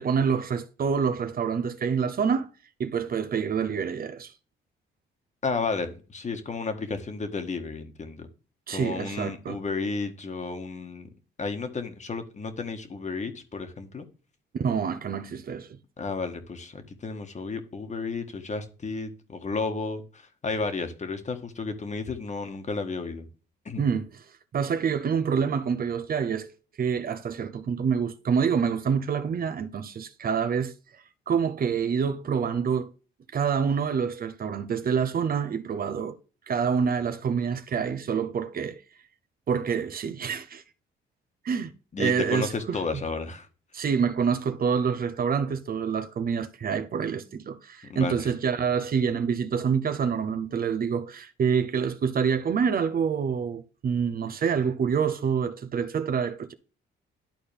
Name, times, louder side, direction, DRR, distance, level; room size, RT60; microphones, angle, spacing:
voice 1, 0.0-2.5 2.8-4.3 8.7-9.6 14.5-15.8 23.8-24.1 24.5-26.5 26.8-32.9 33.3-36.2 36.5-38.8 39.5-40.6 41.4-41.7 42.0-43.0 43.7-56.5, right 6 dB, 50° right, 0.8 m, -27 dB
voice 2, 5.4-8.3 8.7-11.1 11.4-14.0 16.0-23.3 23.6-23.8 41.9-43.5 47.8-48.3, left 4 dB, 35° left, 1.6 m, -32 dB
11.5 x 4.2 x 3.4 m
cardioid pair, 90°, 20 cm